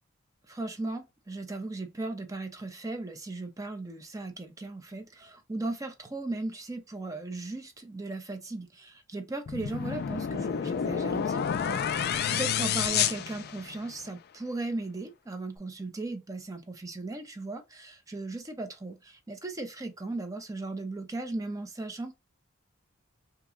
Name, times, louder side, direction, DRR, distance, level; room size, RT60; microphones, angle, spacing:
voice 1, 0.5-22.1, right 2 dB, 15° right, 0.5 m, -37 dB
sound 1, 9.5-14.1, left 8 dB, 50° left, 0.3 m, -29 dB
2.8 x 2.2 x 3.6 m
head